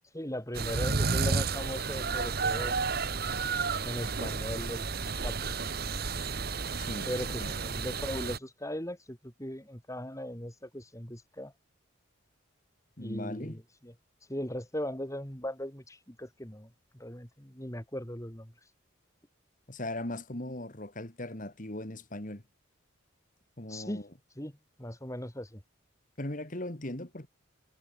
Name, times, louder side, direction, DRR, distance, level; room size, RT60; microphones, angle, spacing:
voice 1, 0.1-3.1 3.8-5.5 7.0-11.5 13.0-13.9 14.3-18.5 23.7-24.0 24.4-25.6, left 1 dB, 15° left, 3.6 m, -39 dB
sound 1, 0.5-8.4, right 4 dB, 45° right, 1.2 m, -31 dB
voice 2, 6.8-7.1 7.4-7.5 13.0-13.6 19.7-22.4 23.6-24.1 26.2-27.3, left 1 dB, 40° left, 2.1 m, -38 dB
head